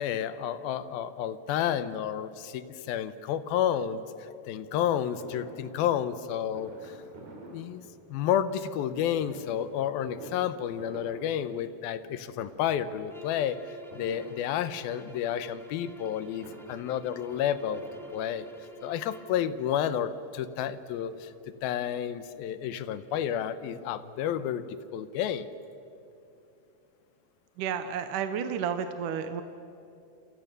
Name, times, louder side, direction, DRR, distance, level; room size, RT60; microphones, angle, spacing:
voice 1, 0.0-7.0 7.5-7.8 8.1-17.8 18.1-18.5 18.8-21.3 21.6-25.5, left 10 dB, 80° left, 13 dB, 2.7 m, -31 dB
Fireworks, 5.2-8.4 9.2-12.1 12.3-13.0 13.9-15.0 16.1-18.8 19.6-19.7 20.0-20.1 20.4-21.6 22.0-22.1 22.2-22.3, right 2 dB, 50° right, 5.2 m, -49 dB
sound 1, 13.1-19.4, right 2 dB, 5° left, 0.4 m, -50 dB
voice 2, 27.6-29.4, right 7 dB, 70° right, 8 dB, 2.2 m, -31 dB
28.5 x 27.5 x 6.8 m, 2.7 s
omnidirectional pair, 4.3 m